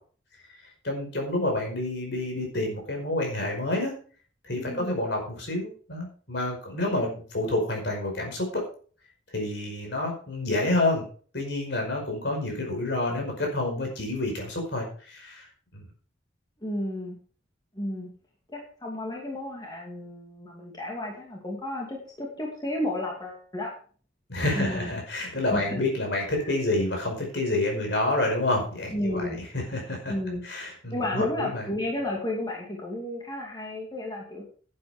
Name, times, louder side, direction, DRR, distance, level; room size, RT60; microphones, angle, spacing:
voice 1, 0.8-3.9 4.4-8.6 9.3-11.0 11.3-15.5 15.7-15.8 24.3-30.1 30.4-31.7, left 2 dB, 60° left, 1 dB, 5.2 m, -28 dB
voice 2, 4.5-4.9 16.6-17.2 17.7-18.1 18.5-23.7 24.5-24.9 25.2-25.8 26.4-26.5 28.9-29.4 30.1-30.4 30.9-34.5, left 1 dB, 20° left, -2 dB, 2.5 m, -32 dB
11.0 x 8.8 x 5.0 m, 0.42 s
head